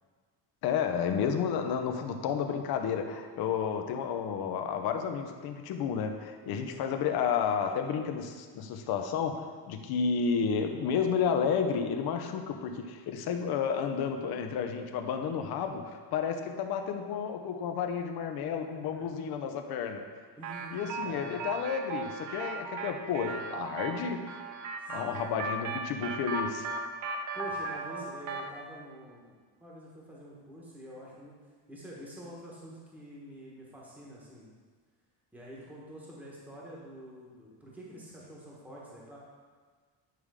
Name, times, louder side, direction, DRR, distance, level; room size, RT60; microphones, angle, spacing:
voice 1, 0.6-20.0 20.7-24.3 24.9-26.7, left 6 dB, 60° left, 5 dB, 0.7 m, -31 dB
voice 2, 18.7-19.1 20.4-21.4 24.8-25.3 27.3-31.4 31.7-34.5 35.3-39.2, equal, 5° right, -5 dB, 1.2 m, -47 dB
sound 1, 20.4-28.6, right 3 dB, 45° right, 0.6 m, -37 dB
9.3 x 3.5 x 4.9 m, 1.5 s
cardioid pair, 155°, 43 cm